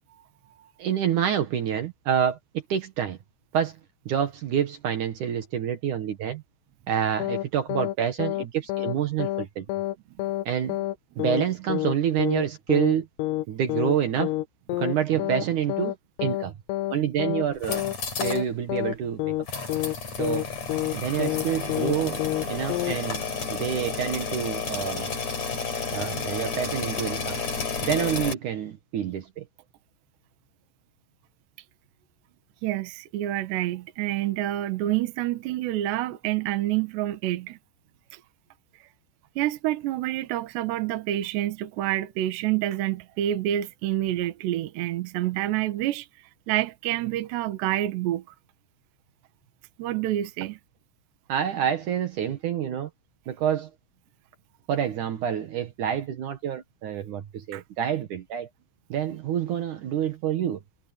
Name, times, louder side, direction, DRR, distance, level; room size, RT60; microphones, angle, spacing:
voice 1, 0.8-2.4 2.7-3.2 3.5-3.7 4.1-6.4 6.9-9.7 10.5-10.8 11.2-13.1 13.5-14.3 14.8-15.9 16.2-16.5 16.9-17.8 18.2-19.3 20.2-20.4 20.9-22.2 22.5-23.2 23.5-25.1 25.9-27.4 27.8-29.4 51.3-52.9 53.3-53.7 54.7-58.5 58.9-60.6, right 9 dB, 85° right, 1.7 m, -27 dB
sound 1, 7.2-7.5 7.7-8.0 8.2-8.5 8.7-9.0 9.2-9.5 9.7-10.0 10.2-10.5 10.7-11.0 11.2-11.5 11.7-12.0 12.2-12.5 12.7-13.0 13.2-13.5 13.7-14.0 14.2-14.5 14.7-15.0 15.2-15.5 15.7-16.5 16.7-17.0 17.2-17.5 17.7-18.0 18.2-18.5 18.7-19.0 19.2-19.5 19.7-20.0 20.2-20.5 20.7-21.0 21.2-21.5 21.7-22.0 22.2-22.5 22.7-23.0, left 16 dB, 90° left, 3.6 m, -28 dB
sound 2, 17.5-18.4 18.8-18.9 19.5-28.3, left 5 dB, 35° left, 5.8 m, -31 dB
voice 2, 32.6-37.6 38.1-38.2 39.4-46.1 46.5-48.2 49.8-50.6 57.5-57.6, right 14 dB, 65° right, 3.3 m, -28 dB
omnidirectional pair, 5.8 m